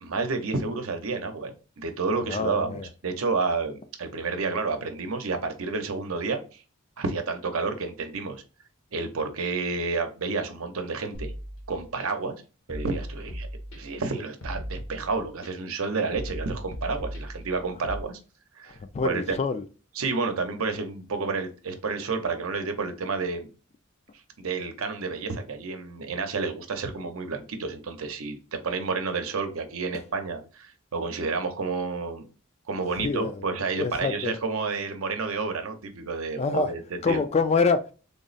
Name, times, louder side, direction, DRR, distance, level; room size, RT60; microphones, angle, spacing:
voice 1, 0.0-6.4 7.0-8.4 8.9-11.3 11.7-12.4 12.7-13.5 13.7-18.2 18.6-19.4 19.9-23.5 24.4-32.3 32.7-37.2, right 4 dB, 80° right, 0.7 m, -30 dB
voice 2, 2.3-2.9 18.9-19.6 33.0-33.4 33.8-34.4 36.4-36.7 37.0-37.9, left 4 dB, 30° left, 0.3 m, -25 dB
sound 1, 11.1-12.1 12.7-14.0 14.4-15.5 16.1-18.0, equal, 70° left, 1.1 m, -37 dB
3.6 x 2.0 x 3.9 m
head